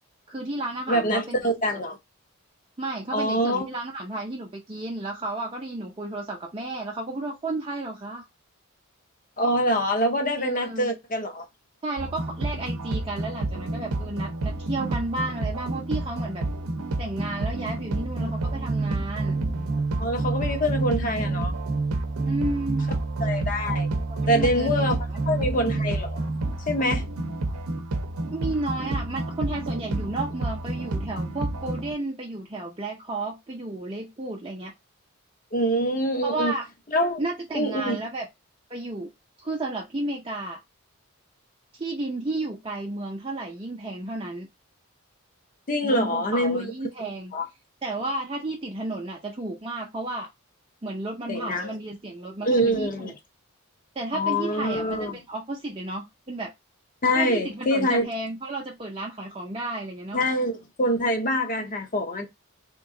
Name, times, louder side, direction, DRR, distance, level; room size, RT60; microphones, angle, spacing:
voice 1, 0.3-1.4 1.7-1.8 2.8-8.3 10.4-10.9 11.8-16.4 17.0-19.4 22.3-22.9 24.1-24.7 25.1-25.2 28.3-34.7 36.2-36.7 37.2-38.3 38.7-39.1 39.4-40.6 41.7-44.5 45.8-47.3 47.8-50.3 50.8-53.1 54.0-56.5 57.1-60.2, right 2 dB, 25° right, 0.5 m, -32 dB
voice 2, 0.9-2.0 3.1-3.7 9.4-11.5 20.0-21.5 23.2-23.9 24.3-25.0 25.3-26.2 26.7-27.0 35.5-36.5 36.9-37.2 37.5-38.0 45.7-46.6 47.3-47.5 51.3-51.7 52.4-53.1 54.1-55.1 57.0-58.1 60.1-62.3, equal, 40° left, 0.7 m, -25 dB
sound 1, 12.0-31.9, right 2 dB, 80° right, 0.7 m, -29 dB
3.5 x 3.0 x 3.6 m
head